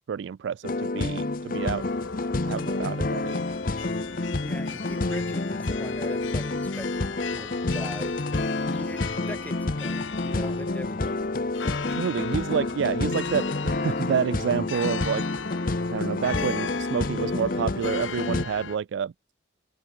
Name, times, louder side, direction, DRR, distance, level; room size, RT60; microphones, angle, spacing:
voice 1, 0.1-1.8 2.4-3.6 11.9-15.2 15.9-19.1, right 7 dB, 65° right, 0.3 m, -29 dB
sound 1, 0.6-18.5, left 2 dB, 45° left, 0.8 m, -29 dB
sound 2, 1.6-18.8, left 6 dB, 75° left, 1.1 m, -38 dB
voice 2, 4.4-8.2 8.5-11.2, equal, 10° left, 3.0 m, -41 dB
head